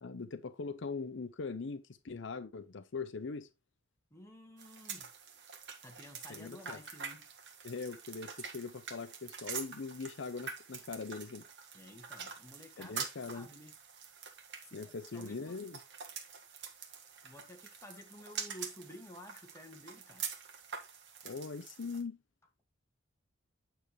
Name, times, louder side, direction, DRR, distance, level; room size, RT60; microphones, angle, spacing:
voice 1, 0.0-3.5 6.3-6.8 7.6-11.4 12.8-13.5 14.7-15.8 21.2-22.2, left 4 dB, 65° left, 0.6 m, -41 dB
voice 2, 4.1-5.1 5.8-7.3 11.7-13.1 13.3-13.8 14.6-15.7 17.2-20.3, left 1 dB, 15° left, 1.9 m, -52 dB
sound 1, 4.6-22.0, right 6 dB, 65° right, 1.7 m, -46 dB
9.0 x 6.8 x 3.2 m
head